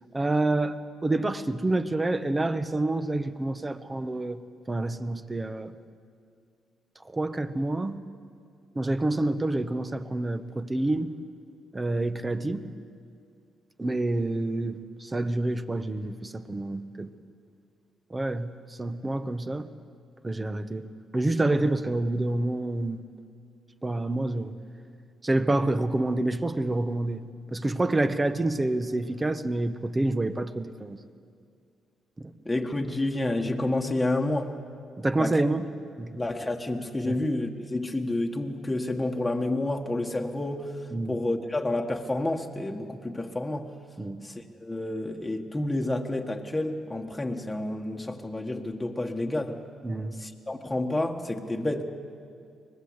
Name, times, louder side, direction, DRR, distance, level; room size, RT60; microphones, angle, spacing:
voice 1, 0.1-4.4 4.7-5.7 7.0-8.0 8.7-11.1 11.7-12.7 13.8-17.1 18.1-19.7 20.2-20.9 21.1-23.0 23.8-24.5 25.2-27.2 27.5-31.0 32.2-32.3 35.0-35.7 36.0-36.1 37.0-37.2 40.9-41.1 44.0-44.2 49.8-50.2, right 2 dB, 20° right, 11 dB, 1.0 m, -28 dB
voice 2, 32.4-34.6 35.2-35.4 36.1-40.8 41.1-43.7 44.2-49.6 50.2-51.8, left 2 dB, 10° left, 1 dB, 1.6 m, -29 dB
23.5 x 19.5 x 8.1 m, 2.3 s
cardioid pair, 90°, 0 cm